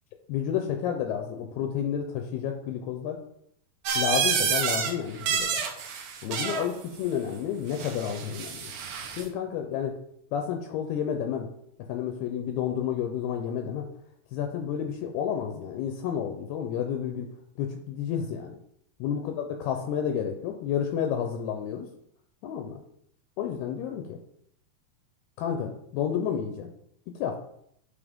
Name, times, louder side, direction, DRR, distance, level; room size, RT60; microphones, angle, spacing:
voice 1, 0.3-3.2 4.0-5.6 6.2-8.7 9.2-10.0 10.3-11.5 11.9-13.9 14.3-17.3 17.6-18.6 19.0-21.9 22.4-22.8 23.4-24.2 25.4-26.7 27.2-27.4, left 8 dB, 80° left, 5 dB, 2.5 m, -30 dB
sound 1, 3.9-4.9 5.2-6.7 7.7-9.3, right 6 dB, 70° right, 2.3 m, -29 dB
8.7 x 4.6 x 3.5 m, 0.70 s
omnidirectional pair, 4.8 m